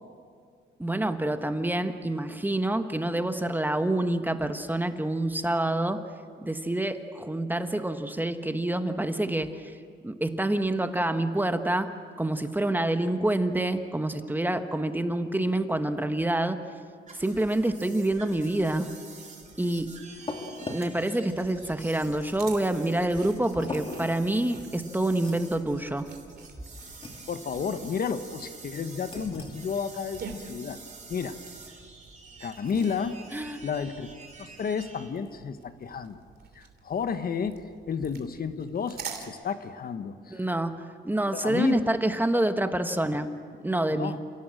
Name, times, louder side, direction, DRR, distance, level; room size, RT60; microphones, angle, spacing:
voice 1, 0.8-6.0 6.4-9.7 10.0-11.9 12.2-16.6 17.2-18.9 19.6-19.9 20.7-26.1 33.3-33.6 40.3-43.3 43.6-44.2, right 1 dB, 10° right, 8 dB, 1.3 m, -27 dB
sound 1, 17.1-35.1, right 4 dB, 35° right, 3.5 m, -48 dB
sound 2, 19.5-34.5, left 2 dB, 25° left, 2.8 m, -44 dB
sound 3, 21.4-39.3, right 5 dB, 55° right, 2.9 m, -48 dB
voice 2, 27.3-30.8 31.1-31.4 32.4-33.2 33.6-34.1 34.4-36.2 36.5-40.4 41.3-41.8 43.9-44.2, left 6 dB, 50° left, 10 dB, 1.2 m, -32 dB
29.0 x 17.0 x 7.7 m, 2.1 s
cardioid pair, 90°, 20 cm